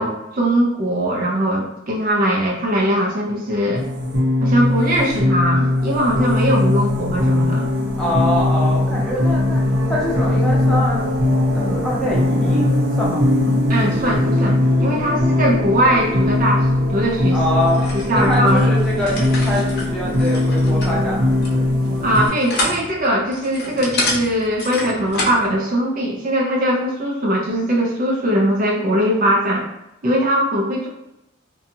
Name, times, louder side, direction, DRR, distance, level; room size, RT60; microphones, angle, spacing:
voice 1, 0.0-3.8 4.4-7.7 13.7-16.7 16.9-17.4 17.9-18.6 22.0-29.6 30.0-30.9, equal, 40° right, -1 dB, 0.4 m, -20 dB
sound 1, 3.7-22.3, left 1 dB, 65° right, 0.8 m, -19 dB
voice 2, 8.0-11.0 11.5-12.6 13.0-13.3 17.3-17.8 18.1-21.7, left 1 dB, 5° left, -7 dB, 0.7 m, -24 dB
sound 2, 17.6-25.5, left 2 dB, 55° left, 0.7 m, -28 dB
2.6 x 2.2 x 2.7 m, 0.90 s
head